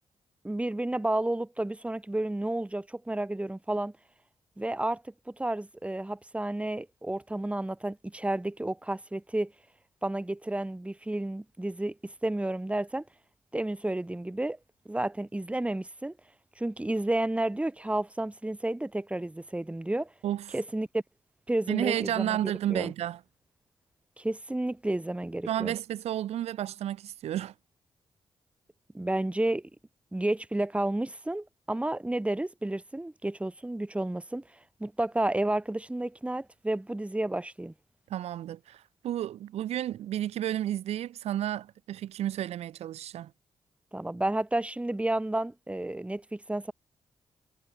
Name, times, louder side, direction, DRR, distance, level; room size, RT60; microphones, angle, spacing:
voice 1, 0.4-3.9 4.6-5.0 5.3-9.5 10.0-13.0 13.5-14.6 14.8-16.1 16.6-20.1 20.5-21.0 21.5-22.9 24.2-25.7 28.9-29.7 30.1-34.4 34.8-37.7 43.9-46.7, right 1 dB, 10° right, 1.3 m, -31 dB
voice 2, 20.2-20.5 21.7-23.2 25.5-27.5 38.1-43.3, right 12 dB, 85° right, 0.7 m, -32 dB
cardioid pair, 65°, 11 cm